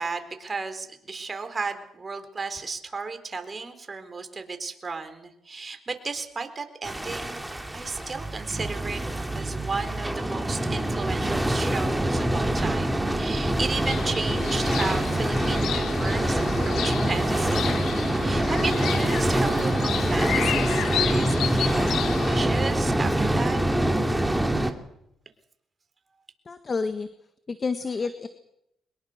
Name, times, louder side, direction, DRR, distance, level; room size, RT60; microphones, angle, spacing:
voice 1, 0.0-7.4 7.7-9.0 9.3-17.8 18.1-23.6, right 4 dB, 35° right, 8 dB, 4.1 m, -34 dB
sound 1, 6.8-24.7, right 1 dB, 10° right, 2.7 m, -25 dB
sound 2, 13.9-22.5, left 10 dB, 75° left, 1.1 m, -32 dB
voice 2, 26.5-27.1 27.5-28.3, left 4 dB, 35° left, 10 dB, 1.6 m, -29 dB
24.0 x 21.5 x 6.6 m, 0.78 s
cardioid pair, 75°, 0 cm